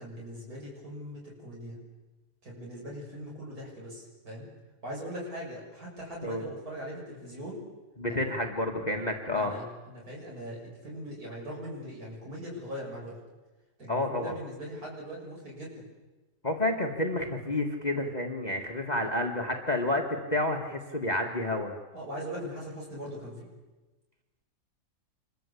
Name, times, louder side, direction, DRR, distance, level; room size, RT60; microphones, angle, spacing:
voice 1, 0.0-1.8 2.4-4.5 4.8-7.6 8.6-9.0 9.3-13.2 13.8-15.9 21.9-23.5, equal, 60° right, -3 dB, 7.3 m, -40 dB
voice 2, 8.0-9.5 13.9-14.3 16.4-21.7, left 1 dB, 25° left, 3 dB, 2.0 m, -30 dB
27.5 x 22.0 x 8.4 m, 1.2 s
omnidirectional pair, 1.8 m